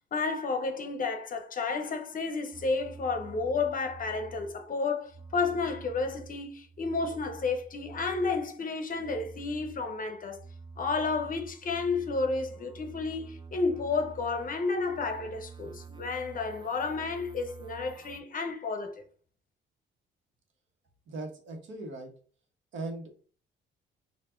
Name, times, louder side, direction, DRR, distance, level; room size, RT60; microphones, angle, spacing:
voice 1, 0.1-10.4 10.8-19.0, left 4 dB, 45° left, 0.8 m, -31 dB
sound 1, 2.5-4.7 5.1-8.6 8.9-18.2, right 4 dB, 25° right, 0.4 m, -48 dB
voice 2, 21.1-22.1 22.7-23.1, right 2 dB, 75° right, 1.3 m, -38 dB
4.6 x 2.6 x 3.8 m
cardioid pair, 90°, 20 cm